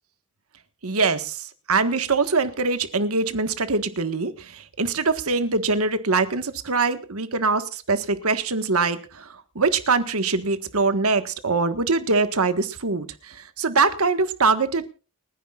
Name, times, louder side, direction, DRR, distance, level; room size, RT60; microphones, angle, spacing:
voice 1, 0.8-14.9, right 4 dB, 75° right, 10 dB, 1.6 m, -23 dB
29.5 x 10.0 x 2.5 m, 0.35 s
head